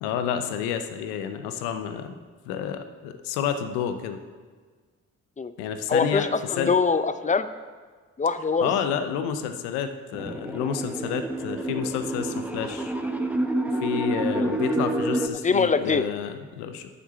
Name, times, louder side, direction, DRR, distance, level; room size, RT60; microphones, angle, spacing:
voice 1, 0.0-2.1 2.5-4.2 5.6-6.3 6.6-6.7 8.6-12.9 13.8-16.9, left 8 dB, 85° left, 8 dB, 0.7 m, -29 dB
voice 2, 5.9-7.5 8.2-8.7 14.3-14.5 15.3-16.0, left 5 dB, 20° left, 12 dB, 0.6 m, -23 dB
sound 1, 10.1-15.3, right 1 dB, 5° right, 0.9 m, -28 dB
8.3 x 5.9 x 6.9 m, 1.5 s
hypercardioid pair, 40°, 37 cm